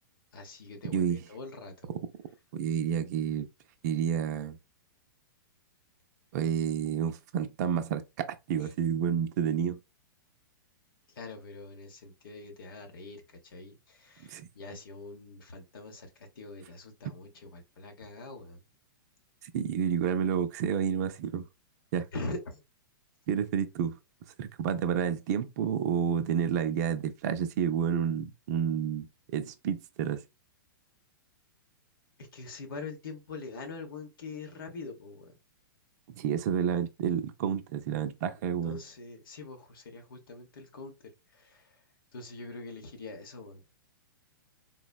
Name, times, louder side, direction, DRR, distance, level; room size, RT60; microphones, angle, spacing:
voice 1, 0.3-1.9 8.6-8.7 11.1-18.6 22.1-22.6 32.2-35.4 38.6-41.8 42.1-43.6, left 3 dB, 75° left, 0.9 m, -43 dB
voice 2, 2.5-3.5 3.8-4.6 6.3-9.8 14.2-14.5 19.5-21.4 21.9-22.1 23.3-24.0 24.4-29.1 29.3-30.2 36.2-38.8, right 8 dB, 50° right, 0.4 m, -30 dB
3.8 x 2.0 x 2.2 m
hypercardioid pair, 135°, 12 cm